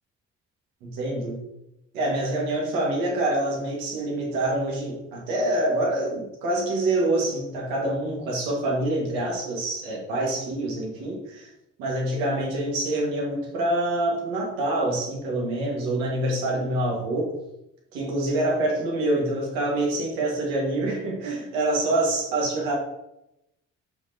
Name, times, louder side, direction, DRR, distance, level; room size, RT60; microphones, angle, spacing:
voice 1, 0.8-1.4 1.9-11.5 11.8-17.3 17.9-22.7, right 1 dB, 90° right, -2 dB, 1.8 m, -26 dB
6.9 x 5.7 x 2.8 m, 0.88 s
supercardioid pair, 60°, 33 cm